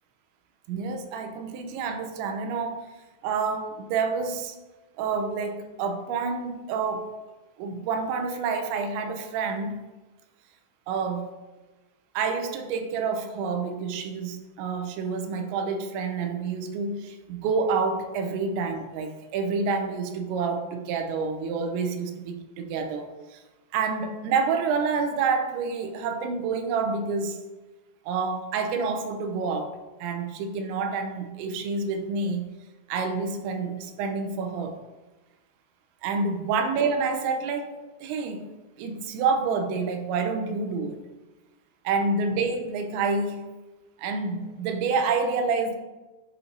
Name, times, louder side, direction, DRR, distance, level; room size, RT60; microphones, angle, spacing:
voice 1, 0.7-2.8 3.2-4.6 5.0-7.1 7.6-9.8 10.9-11.3 12.1-23.4 23.7-27.4 28.1-32.4 32.9-34.8 36.0-37.7 38.0-38.5 38.8-41.0 41.8-43.4 44.0-45.8, right 4 dB, 85° right, 6 dB, 2.9 m, -28 dB
8.7 x 6.5 x 2.6 m, 1.1 s
omnidirectional pair, 5.4 m